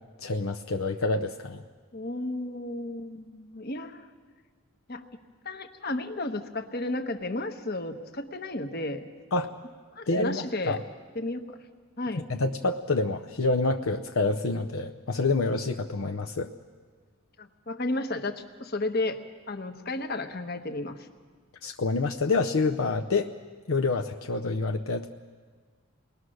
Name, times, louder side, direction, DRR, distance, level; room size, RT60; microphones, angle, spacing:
voice 1, 0.2-1.6 9.3-9.5 10.1-10.8 12.4-16.5 21.6-23.3 23.7-25.1, left 3 dB, 65° left, 3 dB, 0.7 m, -27 dB
voice 2, 1.9-4.1 4.9-5.1 5.4-9.0 9.9-10.8 11.1-11.6 12.0-12.2 17.4-19.2 19.5-21.1, left 2 dB, 45° left, 7 dB, 1.2 m, -33 dB
28.5 x 20.5 x 6.4 m, 1.5 s
head